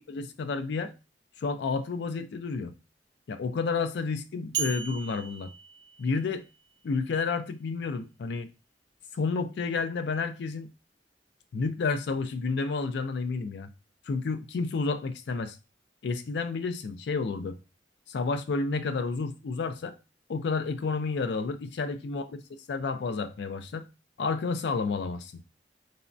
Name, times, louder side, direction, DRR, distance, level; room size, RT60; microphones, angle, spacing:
voice 1, 0.1-0.9 1.4-2.7 3.3-5.5 6.0-6.5 6.8-8.5 9.1-10.7 11.5-13.7 14.1-15.6 16.0-17.6 18.1-19.9 20.3-22.2 22.7-23.9 24.2-25.3, left 4 dB, 70° left, 0.4 m, -30 dB
sound 1, 4.5-6.6, right 7 dB, 75° right, 0.7 m, -36 dB
3.3 x 2.0 x 2.5 m
head